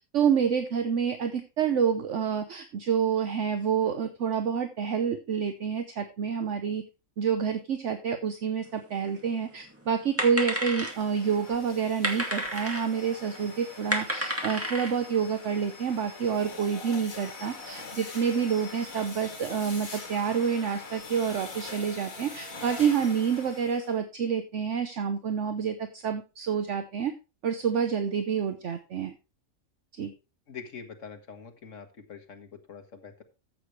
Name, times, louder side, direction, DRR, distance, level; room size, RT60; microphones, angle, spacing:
voice 1, 0.1-6.8 7.2-27.1 27.4-29.1 29.9-30.1, right 7 dB, 60° right, 8 dB, 1.1 m, -28 dB
sound 1, 8.7-8.8 8.9-9.5 9.8-11.2 11.8-12.9 13.3-13.4 13.7-15.2, equal, 10° right, 2.1 m, -31 dB
sound 2, 10.7-23.9, left 3 dB, 80° left, 2.4 m, -43 dB
voice 2, 30.5-33.2, left 6 dB, 65° left, 5 dB, 1.9 m, -44 dB
14.5 x 6.7 x 3.2 m, 0.29 s
omnidirectional pair, 1.4 m